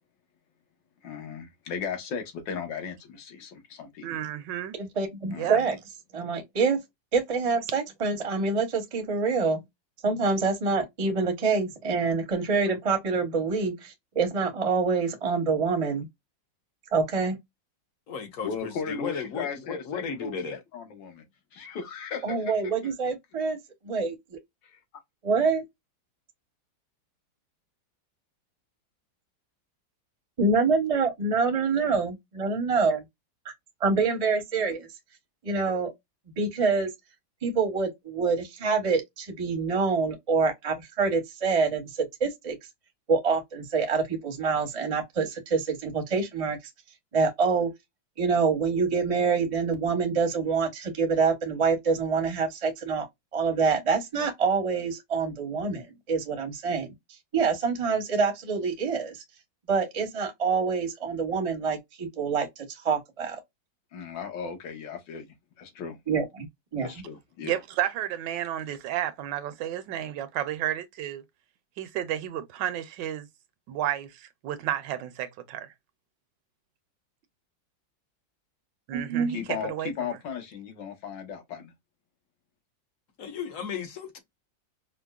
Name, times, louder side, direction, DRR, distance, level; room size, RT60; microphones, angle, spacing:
voice 1, 1.0-4.2 5.3-5.7 18.4-21.2 21.5-22.5 24.6-24.8 63.9-65.3 65.6-66.0 66.8-67.6 79.3-81.7, left 6 dB, 70° left, 1.7 m, -36 dB
voice 2, 4.0-4.7 5.4-5.6 67.4-71.2 71.8-73.3 73.7-75.7 78.9-79.4 79.7-79.9, right 11 dB, 75° right, 1.2 m, -31 dB
voice 3, 4.8-5.8 6.1-6.8 7.1-9.6 10.0-16.1 16.9-17.4 22.2-23.6 23.8-24.4 25.2-25.6 30.4-33.0 33.8-34.9 35.4-35.9 36.4-36.9 37.4-41.9 42.2-42.6 43.1-46.6 47.1-47.7 48.2-53.1 53.3-56.9 57.3-59.2 59.7-62.5 62.8-63.4 66.1-66.5 66.7-66.9 78.9-79.4, right 4 dB, 35° right, 0.5 m, -26 dB
voice 4, 18.1-20.6 83.2-84.2, left 6 dB, 55° left, 1.0 m, -35 dB
5.1 x 2.0 x 2.2 m
omnidirectional pair, 2.1 m